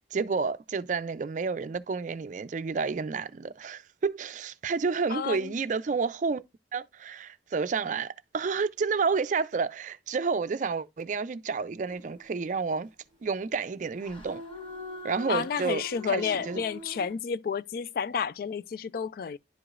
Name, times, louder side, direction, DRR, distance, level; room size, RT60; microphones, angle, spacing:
voice 1, 0.1-6.4 6.7-12.9 13.2-14.4 15.0-16.6, right 5 dB, 45° right, 0.4 m, -30 dB
voice 2, 5.1-5.5 15.3-19.4, left 6 dB, 55° left, 0.3 m, -31 dB
sound 1, 11.8-12.5 14.0-17.1, left 1 dB, 30° left, 1.3 m, -43 dB
10.5 x 4.8 x 2.4 m
head